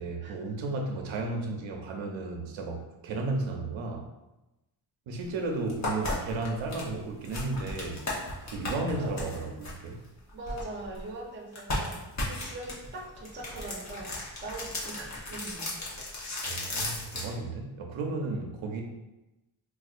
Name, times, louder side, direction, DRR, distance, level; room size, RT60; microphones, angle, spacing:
voice 1, 0.0-4.1 5.1-8.1 8.5-10.0 16.5-18.8, right 3 dB, 85° right, 2 dB, 0.6 m, -33 dB
sound 1, 5.2-5.3 5.7-11.1 11.5-17.3, left 2 dB, 35° left, 0.8 m, -35 dB
voice 2, 8.9-9.3 10.3-14.2 14.4-15.9, right 2 dB, 25° right, -3 dB, 0.6 m, -41 dB
4.3 x 2.3 x 2.4 m, 0.99 s
wide cardioid pair, 160°, 46 cm